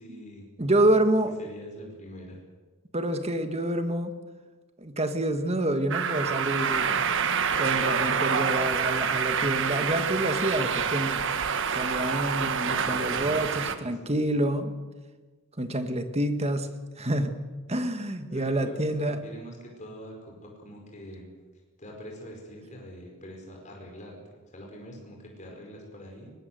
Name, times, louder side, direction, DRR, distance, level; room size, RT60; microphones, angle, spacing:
voice 1, 0.0-0.5 1.4-2.4 10.6-10.8 12.6-14.1 18.3-21.3 21.8-24.2 24.5-26.3, equal, 35° left, 0 dB, 5.1 m, -43 dB
voice 2, 0.6-1.3 2.9-4.1 4.8-7.0 7.6-11.2 11.7-14.7 15.6-16.7 17.0-17.4 17.7-19.2, right 1 dB, 30° right, 8 dB, 1.7 m, -27 dB
sound 1, 5.9-13.7, right 6 dB, 55° right, 1.3 m, -27 dB
22.5 x 19.0 x 7.9 m, 1.3 s
head